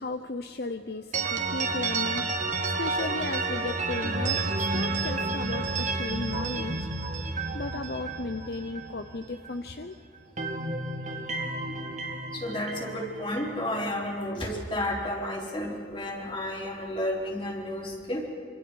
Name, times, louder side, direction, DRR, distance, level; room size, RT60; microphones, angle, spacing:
voice 1, 0.0-2.2 2.6-4.4 4.7-6.8 7.5-9.9 11.0-11.4, left 3 dB, 60° left, 8 dB, 0.8 m, -35 dB
sound 1, 1.1-9.9 10.1-14.3, right 3 dB, 40° right, 1.9 m, -31 dB
voice 2, 12.3-18.3, left 1 dB, 30° left, -1 dB, 4.0 m, -32 dB
26.0 x 25.5 x 5.3 m, 2.2 s
head